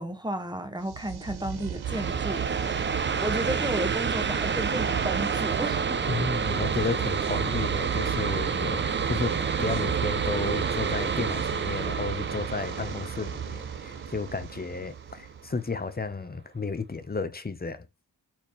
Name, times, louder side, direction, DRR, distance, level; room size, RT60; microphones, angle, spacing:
voice 1, 0.0-2.7 3.2-6.1, right 1 dB, 10° right, 1.0 m, -33 dB
sound 1, 0.8-15.6, right 9 dB, 80° right, 0.8 m, -35 dB
sound 2, 1.8-15.2, right 6 dB, 30° right, 0.4 m, -29 dB
voice 2, 6.1-9.3 9.6-17.8, left 4 dB, 25° left, 0.7 m, -32 dB
4.4 x 3.6 x 3.1 m
wide cardioid pair, 95°, 38 cm